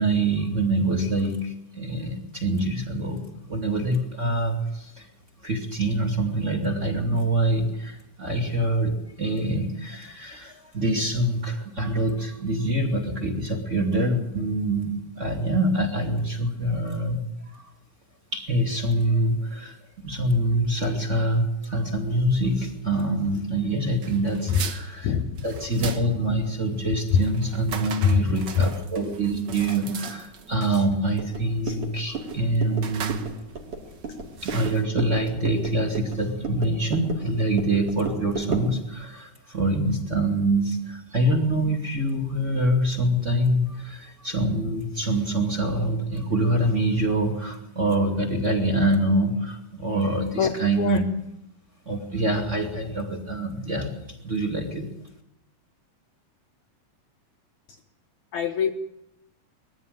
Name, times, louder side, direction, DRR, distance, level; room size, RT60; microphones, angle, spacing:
voice 1, 0.0-5.1 5.4-17.2 17.5-17.7 18.3-19.8 20.0-25.1 25.4-33.2 34.4-51.1 51.9-54.0 54.2-54.8, right 1 dB, 25° right, 3 dB, 2.2 m, -25 dB
sound 1, 24.0-34.8, right 7 dB, 80° right, 1.0 m, -39 dB
voice 2, 25.0-25.4 27.1-27.3 28.0-28.2 28.6-28.7 50.4-51.0 58.3-58.7, left 6 dB, 70° left, 7 dB, 1.8 m, -22 dB
sound 2, 31.2-38.8, right 3 dB, 45° right, 3.3 m, -35 dB
21.5 x 15.0 x 9.2 m, 0.86 s
omnidirectional pair, 4.1 m